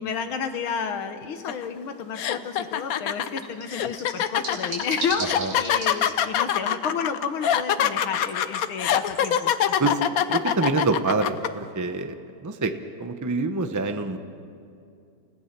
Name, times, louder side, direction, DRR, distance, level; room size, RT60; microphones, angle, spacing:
voice 1, 0.0-9.9, left 6 dB, 90° left, 7 dB, 2.1 m, -31 dB
sound 1, 1.4-11.7, right 2 dB, 80° right, 5.1 m, -41 dB
sound 2, 1.5-1.6 2.1-11.5, left 9 dB, 65° left, 0.9 m, -24 dB
voice 2, 10.3-12.7 13.0-14.2, right 3 dB, 30° right, 7 dB, 0.3 m, -26 dB
29.5 x 16.5 x 6.0 m, 2.5 s
omnidirectional pair, 2.2 m